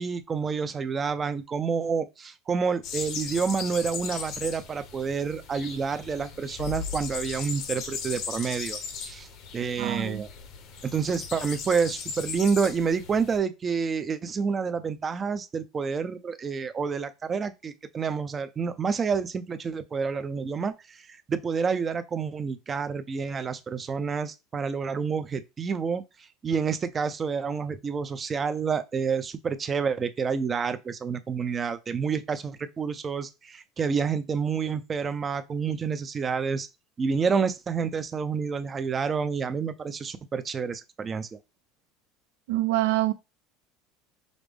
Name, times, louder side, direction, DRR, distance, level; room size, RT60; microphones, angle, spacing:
voice 1, 0.0-9.3 9.5-10.3 10.8-26.0 26.4-36.7 37.0-41.4, right 5 dB, 25° right, 0.4 m, -29 dB
sound 1, 2.8-13.4, left 6 dB, 55° left, 0.8 m, -37 dB
voice 2, 9.8-10.2 42.5-43.1, right 15 dB, 90° right, 0.4 m, -25 dB
5.1 x 2.0 x 3.3 m
cardioid pair, 145°, 0 cm